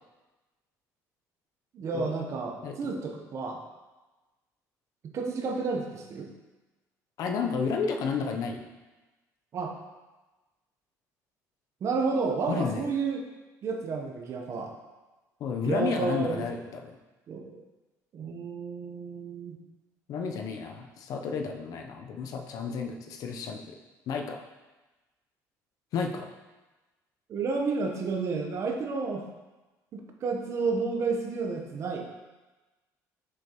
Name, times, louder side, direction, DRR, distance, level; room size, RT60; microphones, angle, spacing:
voice 1, 1.7-3.6 5.0-6.3 9.5-9.7 11.8-13.2 13.6-14.7 15.6-16.4 17.3-17.6 18.1-19.6 27.3-29.3 29.9-32.0, right 4 dB, 45° right, 2 dB, 0.8 m, -31 dB
voice 2, 2.6-3.0 7.2-8.6 12.5-12.9 15.4-17.0 20.1-23.8 24.1-24.4 25.9-26.3, left 5 dB, 60° left, 4 dB, 0.6 m, -32 dB
6.3 x 5.3 x 2.9 m, 1.2 s
cardioid pair, 130°, 7 cm